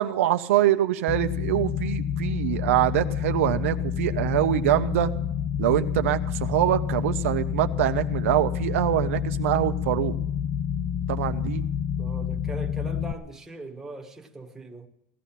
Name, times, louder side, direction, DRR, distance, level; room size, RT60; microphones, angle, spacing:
voice 1, 0.0-5.1 5.6-10.2 11.1-11.6, right 14 dB, 85° right, 1.0 m, -24 dB
sound 1, 1.1-13.1, left 8 dB, 25° left, 0.5 m, -28 dB
voice 2, 12.0-14.9, right 2 dB, 5° right, 1.4 m, -40 dB
17.5 x 12.5 x 5.9 m
supercardioid pair, 165°, 7 cm